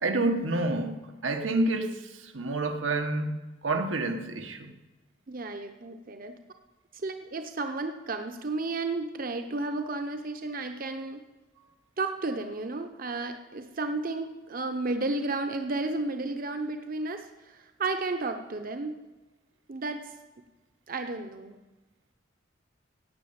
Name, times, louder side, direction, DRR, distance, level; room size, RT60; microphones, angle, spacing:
voice 1, 0.0-3.3 3.6-4.7, right 2 dB, 90° right, 5 dB, 1.5 m, -28 dB
voice 2, 5.3-6.3 7.0-11.2 12.0-19.0 19.7-20.1 20.9-21.6, right 3 dB, 45° right, 7 dB, 0.9 m, -33 dB
16.5 x 6.7 x 8.8 m, 1.1 s
head